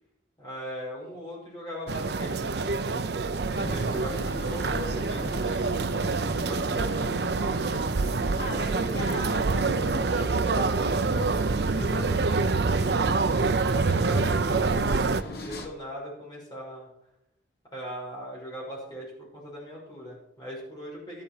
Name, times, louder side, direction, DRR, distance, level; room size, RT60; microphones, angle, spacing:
voice 1, 0.4-7.2 11.7-15.0 15.3-16.9 17.7-21.2, equal, 20° left, -5 dB, 6.4 m, -40 dB
sound 1, 1.9-15.2, right 4 dB, 60° right, 0.6 m, -26 dB
sound 2, 3.5-15.7, left 1 dB, 55° left, 1.6 m, -39 dB
voice 2, 8.4-11.3, left 2 dB, 70° left, -2 dB, 5.1 m, -38 dB
13.5 x 11.5 x 4.9 m, 0.77 s
head